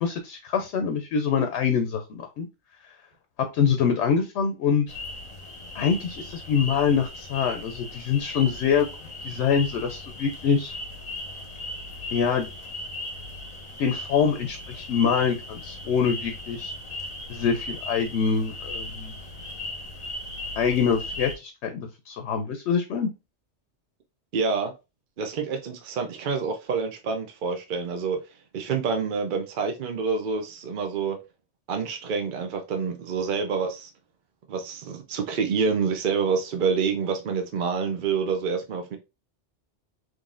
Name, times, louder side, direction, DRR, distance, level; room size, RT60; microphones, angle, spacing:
voice 1, 0.0-2.5 3.5-4.8 5.7-8.9 9.2-10.7 12.1-12.5 13.8-16.7 17.3-19.1 20.6-23.1, left 6 dB, 75° left, 0.9 m, -25 dB
sound 1, 4.9-21.4, left 2 dB, 40° left, 0.8 m, -37 dB
voice 2, 24.3-24.7 25.2-28.2 28.5-31.2 31.7-33.9 34.5-39.0, right 5 dB, 55° right, 0.7 m, -27 dB
3.8 x 3.1 x 2.4 m
omnidirectional pair, 1.2 m